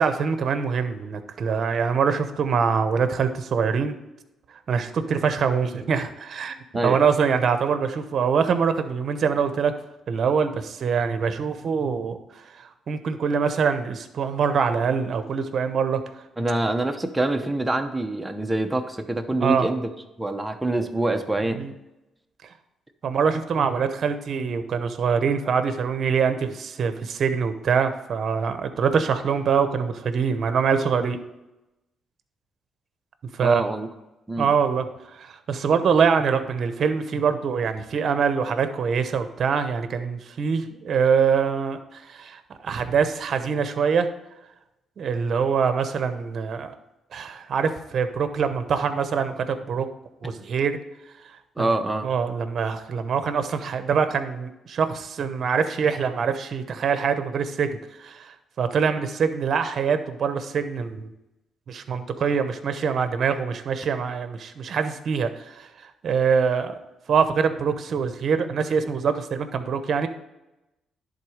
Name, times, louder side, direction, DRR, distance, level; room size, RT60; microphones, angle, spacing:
voice 1, 0.0-4.0 4.7-6.6 6.8-9.7 10.1-16.0 19.4-19.7 21.5-21.7 23.0-31.2 33.3-33.6 34.4-34.8 35.1-44.1 45.0-46.7 47.1-49.9 50.2-50.8 51.2-51.7 52.0-57.7 58.0-61.1 61.7-66.8 67.1-70.1, right 6 dB, 55° right, 9 dB, 0.9 m, -24 dB
voice 2, 16.4-19.9 20.2-21.7 33.4-33.9 34.3-34.5 50.2-50.3 51.6-52.1, right 2 dB, 10° right, 6 dB, 0.9 m, -25 dB
11.0 x 4.0 x 5.0 m, 0.95 s
cardioid pair, 90°, 0 cm